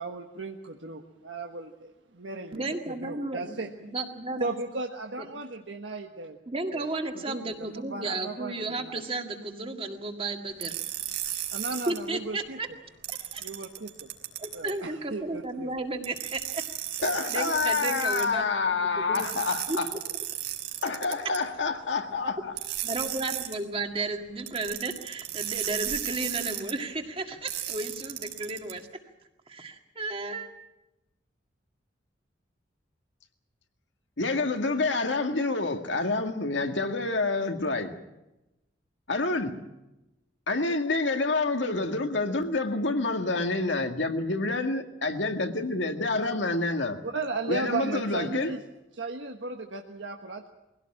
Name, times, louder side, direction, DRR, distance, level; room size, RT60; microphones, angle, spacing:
voice 1, 0.0-3.7 4.4-6.4 6.7-6.9 7.1-9.0 11.5-12.6 13.4-14.1 14.5-15.7 17.0-17.2 47.0-48.6 48.9-50.5, right 3 dB, 90° right, 1.4 m, -36 dB
voice 2, 2.5-4.5 6.5-10.8 11.9-12.7 13.1-13.5 14.4-16.6 17.3-19.3 19.7-20.0 22.8-28.9 29.5-30.5, right 2 dB, 30° right, 2.0 m, -34 dB
sound 1, 10.6-12.0 13.0-14.7 16.0-18.3 19.2-21.4 22.6-23.6 24.5-26.7 27.5-28.7, right 12 dB, 60° right, 3.5 m, -34 dB
voice 3, 17.0-19.9 20.8-22.5 34.2-37.9 39.1-39.6 40.5-47.0 47.5-48.5, left 3 dB, 80° left, 2.0 m, -28 dB
23.0 x 17.0 x 8.8 m
head